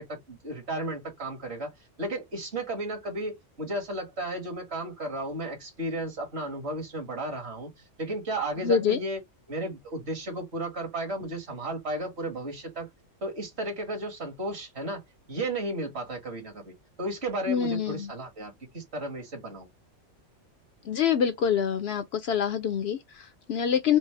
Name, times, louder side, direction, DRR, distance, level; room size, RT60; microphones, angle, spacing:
voice 1, 0.0-1.7 2.0-7.7 8.0-9.2 9.5-12.9 13.2-15.0 15.3-19.7, right 1 dB, 60° right, 1.9 m, -34 dB
voice 2, 8.6-9.0 17.5-18.1 20.9-24.0, left 7 dB, 65° left, 0.7 m, -26 dB
5.2 x 2.0 x 3.2 m
omnidirectional pair, 1.3 m